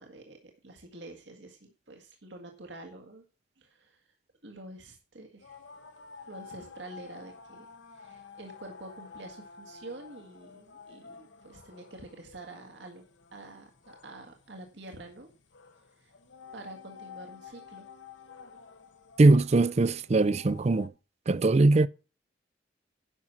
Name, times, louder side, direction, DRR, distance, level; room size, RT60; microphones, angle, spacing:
voice 1, 0.0-3.2 3.6-4.0 4.4-5.6 6.3-13.0 13.3-15.3 16.0-16.1 16.5-17.9, right 2 dB, 75° right, 1.8 m, -47 dB
sound 1, 5.4-20.9, left 5 dB, 85° left, 1.3 m, -51 dB
voice 2, 19.2-20.9 21.3-21.9, right 2 dB, 35° right, 0.4 m, -21 dB
11.0 x 6.0 x 5.6 m
head